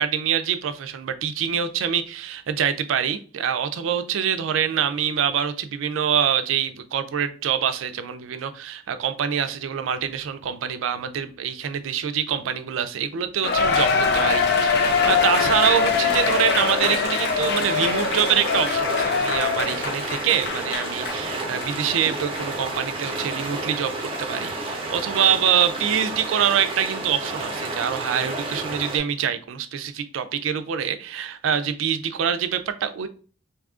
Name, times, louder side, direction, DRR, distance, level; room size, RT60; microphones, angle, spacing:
voice 1, 0.0-23.9 24.2-33.1, right 8 dB, 85° right, 10 dB, 0.4 m, -25 dB
Cheering, 13.4-21.2 21.6-21.7 22.4-22.5, left 5 dB, 55° left, 0.4 m, -23 dB
sound 1, 14.8-29.0, right 2 dB, 30° right, 0.6 m, -31 dB
2.7 x 2.4 x 3.6 m, 0.40 s
head